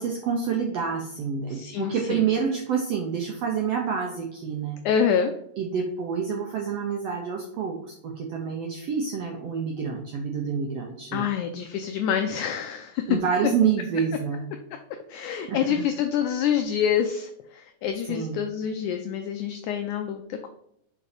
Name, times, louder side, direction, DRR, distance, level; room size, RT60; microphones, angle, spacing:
voice 1, 0.0-4.8 5.6-11.3 13.1-14.5 15.5-15.8 18.0-18.4, right 6 dB, 80° right, 0 dB, 1.4 m, -28 dB
voice 2, 1.5-2.3 4.9-5.3 11.1-13.2 15.1-20.5, left 8 dB, 80° left, 6 dB, 1.8 m, -26 dB
5.4 x 4.9 x 5.0 m, 0.76 s
omnidirectional pair, 4.0 m